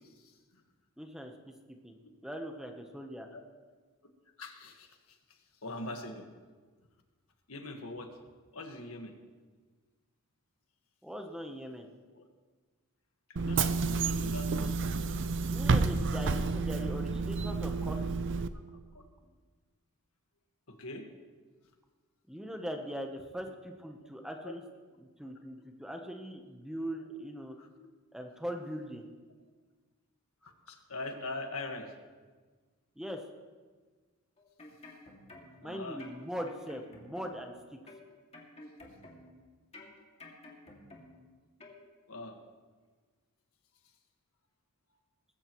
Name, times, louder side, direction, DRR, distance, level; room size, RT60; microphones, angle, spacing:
voice 1, 1.0-1.3 1.8-1.9 2.2-3.3 11.0-11.8 15.4-18.2 22.3-24.6 25.0-27.5 28.1-29.1 33.0-33.2 35.6-37.5, equal, 5° right, 3 dB, 0.9 m, -40 dB
voice 2, 4.4-4.9 5.6-6.3 7.5-8.1 8.5-9.1 12.1-12.2 13.4-15.0 18.9-19.0 20.7-21.0 24.4-24.5 27.6-27.9 30.4-31.9 35.6-36.0 42.1-42.4, left 2 dB, 65° left, 4 dB, 1.6 m, -42 dB
Bus / Engine, 13.4-18.5, right 4 dB, 55° right, 0.6 m, -30 dB
sound 1, 34.4-35.7 36.0-37.5 37.9-39.4 39.7-41.3 41.6-41.8, left 2 dB, 30° left, 2.3 m, -52 dB
20.0 x 15.5 x 3.1 m, 1.4 s
head